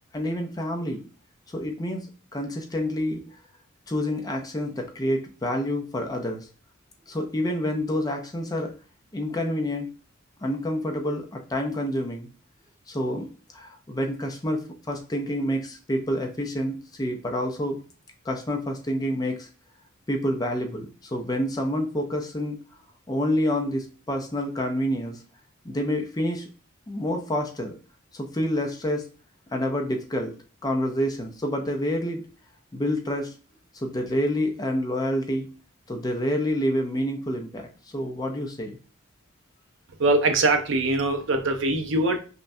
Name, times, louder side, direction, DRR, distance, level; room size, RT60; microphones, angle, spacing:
voice 1, 0.1-1.0 1.5-2.1 2.3-3.2 3.9-6.5 7.1-8.7 9.1-9.9 10.4-12.3 12.9-17.8 18.3-19.5 20.1-22.6 23.1-25.2 25.6-26.5 26.9-27.7 28.1-29.0 29.5-30.3 30.6-32.2 32.7-33.3 33.7-35.5 35.9-38.8, equal, 20° left, 2 dB, 0.5 m, -28 dB
voice 2, 40.0-42.2, right 2 dB, 60° right, 5 dB, 0.6 m, -22 dB
5.4 x 2.2 x 2.6 m, 0.37 s
head